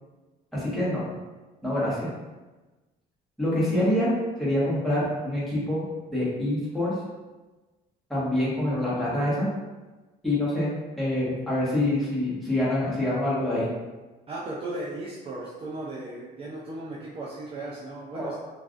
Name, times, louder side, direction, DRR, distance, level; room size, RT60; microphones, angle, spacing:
voice 1, 0.5-1.0 1.6-2.1 3.4-4.1 4.4-5.8 6.1-6.9 8.1-9.5 10.2-13.7 18.1-18.3, left 1 dB, ahead, -9 dB, 1.2 m, -26 dB
voice 2, 14.3-18.4, right 2 dB, 35° right, -5 dB, 0.5 m, -36 dB
3.2 x 2.5 x 2.5 m, 1.2 s
cardioid pair, 110°, 17 cm